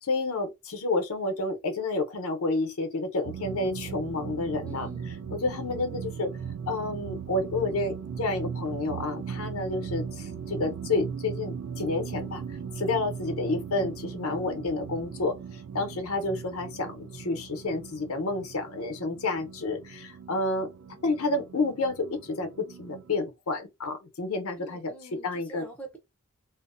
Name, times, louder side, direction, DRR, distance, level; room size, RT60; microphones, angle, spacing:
voice 1, 0.0-4.9 5.3-6.3 6.7-12.4 12.8-15.4 15.7-20.7 21.0-24.9 25.2-25.6, left 2 dB, 85° left, 0.7 m, -30 dB
sound 1, 3.2-23.2, right 7 dB, 85° right, 0.3 m, -38 dB
voice 2, 4.6-5.1 24.6-26.0, right 2 dB, 5° left, 0.5 m, -45 dB
2.5 x 2.1 x 2.5 m
head